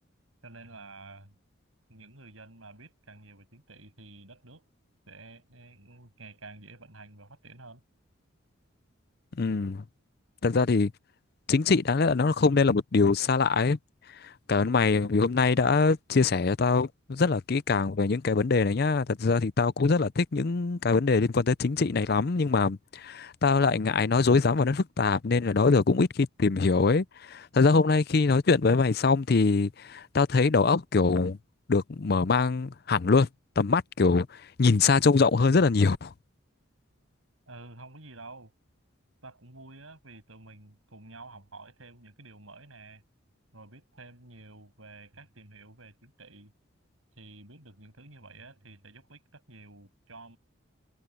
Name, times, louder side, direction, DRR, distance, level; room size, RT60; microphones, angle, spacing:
voice 1, 0.4-1.4 1.9-4.7 5.1-7.8 37.5-38.5 39.2-43.0 43.5-46.5 47.2-50.4, right 3 dB, 80° right, 7.1 m, -50 dB
voice 2, 9.4-9.8 10.4-10.9 11.5-13.8 14.2-31.4 31.7-33.3 33.6-36.1, left 4 dB, 50° left, 0.5 m, -23 dB
head